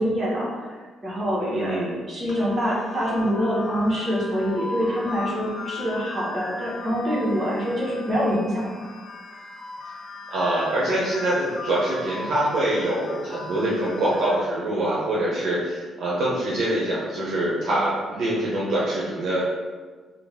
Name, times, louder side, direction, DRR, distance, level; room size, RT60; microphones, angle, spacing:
voice 1, 0.0-8.9, equal, 40° right, -6 dB, 1.4 m, -25 dB
voice 2, 1.4-1.9 10.3-19.4, right 1 dB, 65° right, -6 dB, 0.9 m, -24 dB
sound 1, 2.3-14.4, left 3 dB, 70° left, 0.9 m, -38 dB
3.6 x 2.4 x 3.6 m, 1.4 s
cardioid pair, 90°, 0 cm